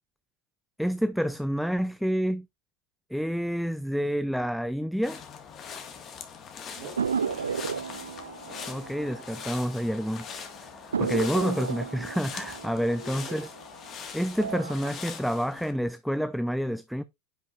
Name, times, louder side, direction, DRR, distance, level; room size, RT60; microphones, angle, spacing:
voice 1, 0.8-2.5 3.1-5.2 8.7-10.7 11.0-13.5 14.1-17.0, equal, ahead, 0.5 m, -28 dB
sound 1, 5.0-15.7, left 7 dB, 35° left, 1.8 m, -42 dB
voice 2, 6.7-7.9 12.7-13.5, right 4 dB, 65° right, 3.4 m, -45 dB
sound 2, 7.0-10.0 10.3-10.4 10.9-13.9 14.3-14.9, right 6 dB, 85° right, 0.4 m, -33 dB
9.9 x 5.5 x 2.6 m
hypercardioid pair, 85°, 0 cm